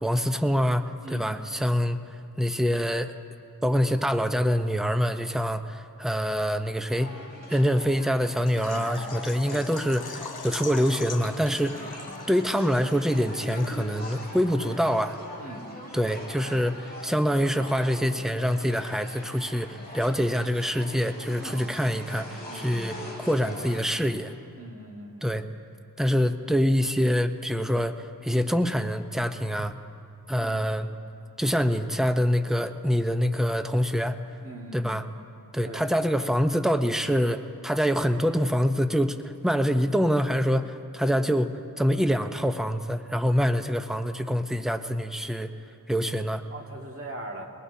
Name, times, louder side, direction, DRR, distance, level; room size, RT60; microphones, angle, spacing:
voice 1, 0.0-2.0 2.4-3.1 3.6-7.1 7.5-11.8 12.3-15.2 15.9-24.3 25.2-25.4 26.0-29.8 30.3-30.9 31.4-34.2 34.7-35.0 35.5-45.5 45.9-46.4, equal, ahead, 7 dB, 0.8 m, -25 dB
sound 1, 6.9-23.8, equal, 25° left, 4.1 m, -42 dB
Water / Liquid, 8.5-14.1 14.3-14.4 14.9-15.0, left 5 dB, 80° left, 0.8 m, -42 dB
voice 2, 8.5-8.9 9.5-9.6 15.4-15.7 21.4-21.6 22.5-22.7 24.5-25.4 30.4-30.7 34.4-34.9 35.6-35.8 46.5-47.5, right 2 dB, 40° right, 0 dB, 2.1 m, -40 dB
23.0 x 19.5 x 2.8 m, 2.5 s
cardioid pair, 40°, 37 cm